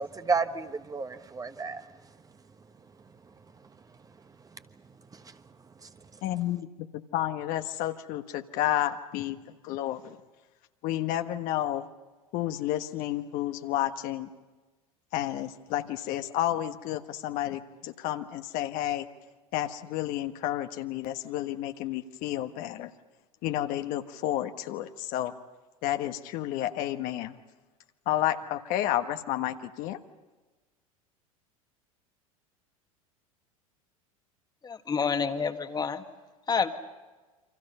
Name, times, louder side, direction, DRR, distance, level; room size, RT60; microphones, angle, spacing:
voice 1, 0.0-1.8 5.1-5.4 5.8-5.9, right 4 dB, 20° right, 9 dB, 1.2 m, -31 dB
voice 2, 6.2-6.7 7.1-9.4 9.6-10.2 10.8-11.8 12.3-14.3 15.1-19.1 19.5-22.9 23.4-25.3 25.8-27.4 28.1-30.0, left 13 dB, 50° left, 8 dB, 1.4 m, -31 dB
voice 3, 34.6-36.0 36.5-36.7, left 5 dB, 20° left, 8 dB, 1.8 m, -28 dB
29.0 x 26.0 x 5.6 m, 1.2 s
figure-of-eight pair, 80°, 18 cm